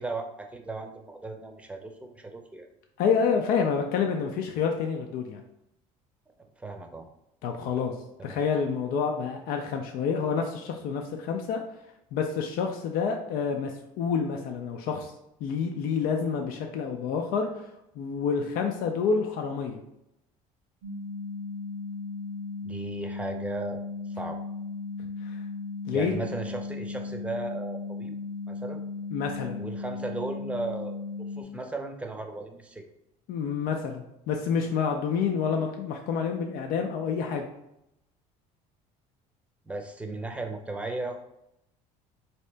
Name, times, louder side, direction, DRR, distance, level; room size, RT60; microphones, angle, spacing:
voice 1, 0.0-2.7 6.6-7.1 8.2-8.4 22.6-23.8 24.1-24.4 25.9-28.1 28.5-28.8 29.6-31.0 31.3-32.9 39.6-41.2, right 2 dB, 10° right, 4 dB, 0.6 m, -36 dB
voice 2, 3.0-5.4 7.4-7.9 8.2-11.6 12.1-15.1 15.4-17.7 18.0-19.8 25.2-25.4 25.9-26.2 29.1-29.6 33.3-37.4, left 6 dB, 70° left, 3 dB, 0.5 m, -28 dB
sound 1, 20.8-31.4, left 4 dB, 80° right, 0.7 m, -36 dB
4.1 x 2.8 x 3.3 m, 0.82 s
supercardioid pair, 100°, 16 cm